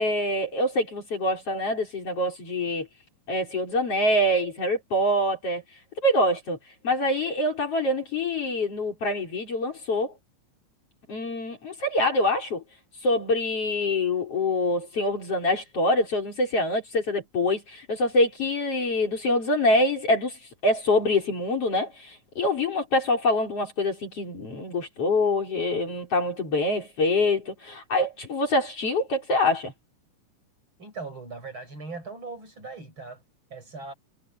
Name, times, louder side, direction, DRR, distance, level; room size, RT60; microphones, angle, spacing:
voice 1, 0.0-2.9 3.3-5.6 6.0-6.6 6.8-10.1 11.1-12.6 13.0-20.3 20.6-29.7, left 1 dB, 45° left, 5.3 m, -25 dB
voice 2, 30.8-33.2 33.5-33.9, right 3 dB, 35° right, 6.2 m, -39 dB
omnidirectional pair, 3.9 m